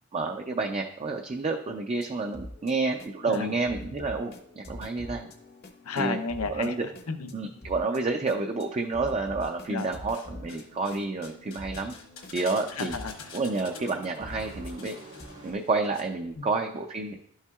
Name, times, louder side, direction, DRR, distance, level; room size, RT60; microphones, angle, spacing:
voice 1, 0.1-5.3 6.0-6.2 6.5-6.8 7.3-12.0 12.3-13.0 13.3-14.9 15.4-17.1, right 3 dB, 30° right, 4 dB, 0.4 m, -29 dB
sound 1, 2.0-15.3, left 1 dB, 45° left, 0.7 m, -46 dB
voice 2, 5.8-7.3 9.7-10.0 12.8-13.3 16.4-16.5, left 4 dB, 85° left, 8 dB, 0.7 m, -33 dB
sound 2, 9.1-9.9 10.1-16.0 16.3-16.4, left 5 dB, 65° left, 1.1 m, -47 dB
sound 3, 12.0-15.5, right 1 dB, 90° right, 1.7 m, -49 dB
11.5 x 5.5 x 2.3 m, 0.71 s
head